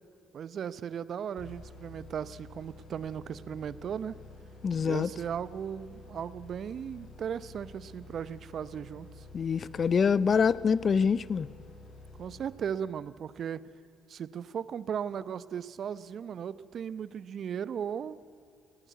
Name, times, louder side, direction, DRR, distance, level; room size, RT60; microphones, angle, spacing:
voice 1, 0.3-4.1 4.8-9.3 12.2-13.7 14.1-18.2, right 8 dB, 60° right, 17 dB, 0.8 m, -37 dB
sound 1, 1.4-13.0, left 2 dB, 65° left, 7.1 m, -50 dB
voice 2, 4.6-5.1 9.3-11.5, left 6 dB, 50° left, 20 dB, 0.7 m, -25 dB
19.5 x 17.5 x 9.3 m, 2.4 s
hypercardioid pair, 55°, 0 cm